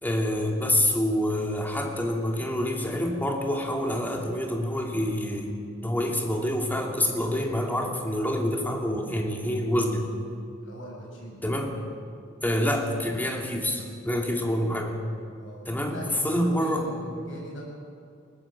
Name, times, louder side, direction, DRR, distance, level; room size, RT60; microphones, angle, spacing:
voice 1, 0.0-5.5 5.8-10.1 11.4-11.7 12.4-15.0 15.7-16.9, left 1 dB, 10° left, 1 dB, 2.7 m, -27 dB
voice 2, 10.6-11.4 14.4-14.5 15.4-15.6 15.9-17.6, equal, 75° left, -2 dB, 7.5 m, -40 dB
21.0 x 19.0 x 7.6 m, 2.4 s
head